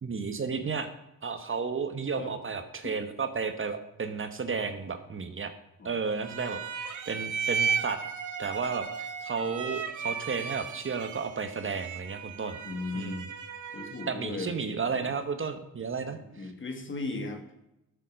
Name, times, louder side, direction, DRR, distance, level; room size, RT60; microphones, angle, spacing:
voice 1, 0.0-0.9 1.2-5.5 5.8-8.0 8.4-12.6 12.9-13.2 14.1-16.5, right 5 dB, 35° right, 8 dB, 1.1 m, -33 dB
sound 1, 6.1-14.2, right 6 dB, 60° right, 1.4 m, -35 dB
voice 2, 12.6-13.2 13.7-15.1 16.1-17.4, left 3 dB, 35° left, 6 dB, 2.0 m, -37 dB
13.0 x 7.1 x 6.3 m, 0.88 s
cardioid pair, 125°, 34 cm